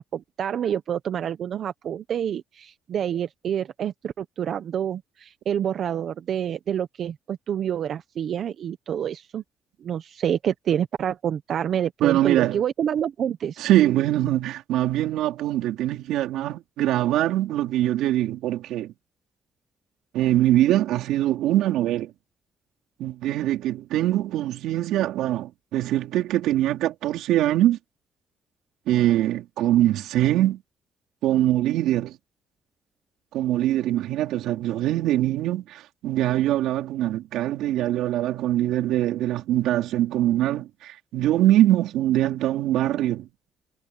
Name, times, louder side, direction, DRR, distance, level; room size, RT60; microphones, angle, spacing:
voice 1, 0.0-9.4 9.8-13.6, right 9 dB, 65° right, 0.9 m, -28 dB
voice 2, 12.0-12.6 13.6-18.9 20.1-22.1 23.0-27.8 28.9-30.6 31.2-32.2 33.3-43.3, right 13 dB, 90° right, 4.3 m, -23 dB
cardioid pair, 90°, 0 cm